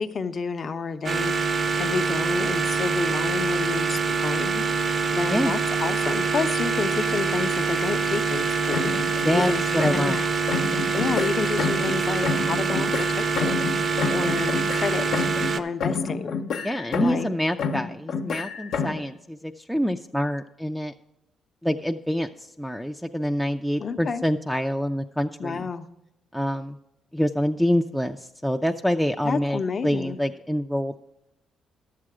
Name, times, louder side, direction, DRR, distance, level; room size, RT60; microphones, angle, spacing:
voice 1, 0.0-1.4 1.8-4.6 5.1-10.3 10.9-15.3 15.6-16.4 17.0-17.3 23.8-24.2 25.4-25.9 29.2-30.2, left 5 dB, 45° left, 8 dB, 0.7 m, -30 dB
sound 1, 1.0-15.6, right 4 dB, 50° right, 0.6 m, -25 dB
voice 2, 5.2-5.5 9.2-10.2 16.6-20.9 21.6-25.7 26.3-26.8 27.1-31.0, equal, ahead, 3 dB, 0.4 m, -26 dB
sound 2, 8.7-10.2 10.5-12.0 12.2-15.6 15.8-17.3 17.6-19.1, left 5 dB, 75° left, 0.8 m, -29 dB
11.5 x 7.6 x 4.9 m, 0.87 s
cardioid pair, 90°, 0 cm